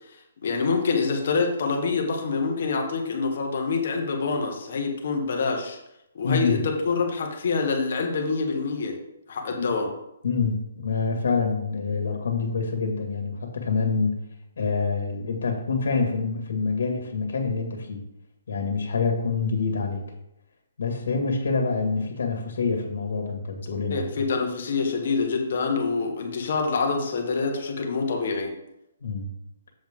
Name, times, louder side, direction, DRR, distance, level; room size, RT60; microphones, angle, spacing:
voice 1, 0.4-5.8 6.1-9.0 9.3-9.9 23.9-28.5, left 4 dB, 50° left, 2 dB, 1.5 m, -26 dB
voice 2, 6.2-6.6 9.6-9.7 10.2-14.1 14.6-18.0 18.5-20.0 20.8-24.2 29.0-29.3, left 4 dB, 65° left, 2 dB, 2.3 m, -26 dB
7.7 x 7.1 x 3.8 m, 0.84 s
hypercardioid pair, 175°, 0 cm